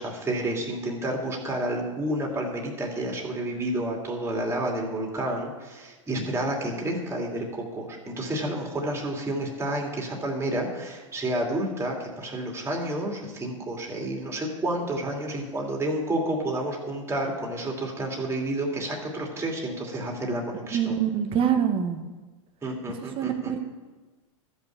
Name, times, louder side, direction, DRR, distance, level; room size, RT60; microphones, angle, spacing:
voice 1, 0.0-21.0 22.6-23.5, right 1 dB, 15° right, -1 dB, 2.6 m, -30 dB
voice 2, 20.7-22.0 23.2-23.6, right 8 dB, 30° right, 6 dB, 1.3 m, -25 dB
13.5 x 5.6 x 7.1 m, 1.3 s
hypercardioid pair, 115°, 17 cm